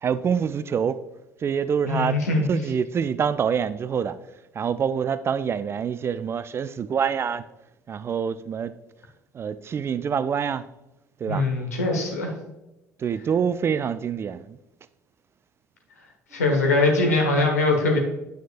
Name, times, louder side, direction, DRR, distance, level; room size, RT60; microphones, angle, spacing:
voice 1, 0.0-1.0 1.4-2.2 2.5-4.2 4.5-7.4 7.9-8.8 9.3-10.6 11.2-11.5 13.0-14.6, right 7 dB, 30° right, 0.4 m, -26 dB
voice 2, 1.9-2.4 11.3-12.3 16.3-18.0, left 2 dB, 75° left, 1.4 m, -22 dB
9.2 x 7.9 x 2.5 m
figure-of-eight pair, 60°, 9 cm